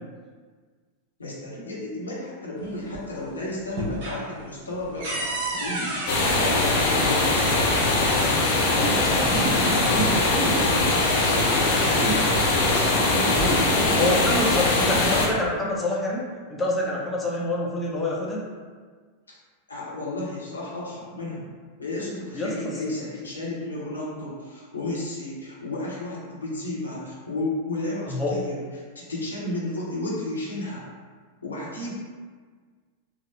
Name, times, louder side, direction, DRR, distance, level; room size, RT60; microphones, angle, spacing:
voice 1, 1.2-5.9 6.2-7.8 12.6-14.2 14.5-15.1 19.7-21.5 21.8-28.6 28.9-30.9 31.4-31.9, left 2 dB, 75° left, -5 dB, 0.9 m, -33 dB
sound 1, 2.6-3.2 3.6-7.6 8.7-8.8 9.2-10.1 10.5-12.1 13.0-13.8, right 1 dB, 50° right, 1.1 m, -33 dB
sound 2, 6.1-15.3, left 2 dB, 55° left, 0.6 m, -21 dB
voice 2, 8.7-10.7 11.9-12.3 13.3-13.6 14.0-18.4 22.3-22.8 28.1-28.3, left 1 dB, 10° left, -5 dB, 0.7 m, -27 dB
3.6 x 2.1 x 3.1 m, 1.5 s
figure-of-eight pair, 90°, 0 cm